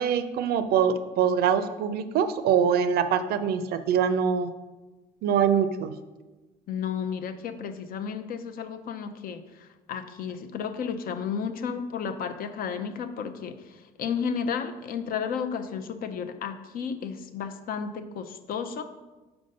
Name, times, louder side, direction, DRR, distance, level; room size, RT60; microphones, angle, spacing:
voice 1, 0.0-4.5 5.2-5.9, right 7 dB, 65° right, 11 dB, 0.4 m, -24 dB
voice 2, 6.7-18.8, left 6 dB, 60° left, 8 dB, 0.6 m, -33 dB
5.3 x 4.5 x 5.3 m, 1.2 s
cardioid pair, 110°, 17 cm